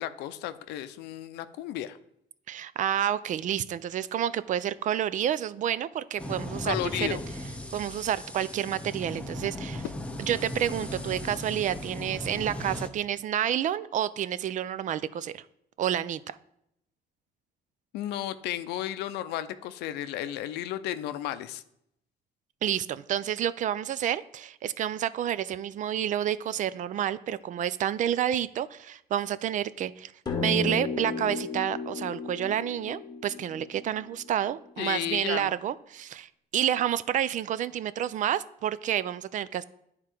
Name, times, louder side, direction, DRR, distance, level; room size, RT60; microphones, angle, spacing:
voice 1, 0.0-2.0 6.6-7.2 17.9-21.6 34.8-35.5, left 12 dB, 85° left, 12 dB, 0.5 m, -33 dB
voice 2, 2.5-7.2 7.7-9.8 10.2-15.4 15.8-16.2 22.6-30.1 30.4-39.6, right 10 dB, 50° right, 17 dB, 0.4 m, -29 dB
sound 1, 6.2-12.9, left 1 dB, 5° left, 0.7 m, -37 dB
sound 2, 30.3-34.9, left 3 dB, 25° left, 1.1 m, -34 dB
10.0 x 3.7 x 4.5 m, 0.75 s
cardioid pair, 110°, 17 cm